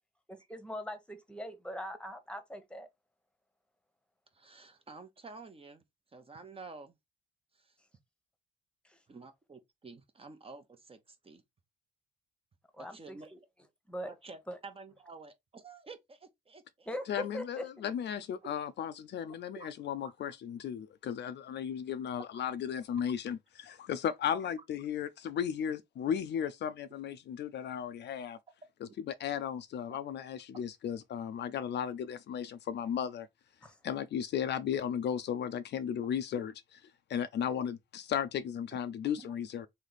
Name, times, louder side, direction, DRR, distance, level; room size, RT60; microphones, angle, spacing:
voice 1, 0.3-2.9 8.8-9.0 12.7-13.4 13.9-14.1 14.5-14.6 16.9-17.9 33.6-33.8, equal, 5° left, 1.0 m, -41 dB
voice 2, 4.3-5.8 6.1-6.9 7.5-7.7 9.1-11.4 12.8-13.3 14.1-16.9 19.6-19.7 20.0-20.1 22.3-22.4 24.3-24.4 29.9-30.0 39.2-39.3, right 4 dB, 30° right, 0.8 m, -50 dB
voice 3, 17.1-28.4 29.1-33.3 33.8-36.5 37.1-39.7, left 8 dB, 60° left, 0.5 m, -35 dB
3.2 x 2.8 x 3.9 m
cardioid pair, 90°, 20 cm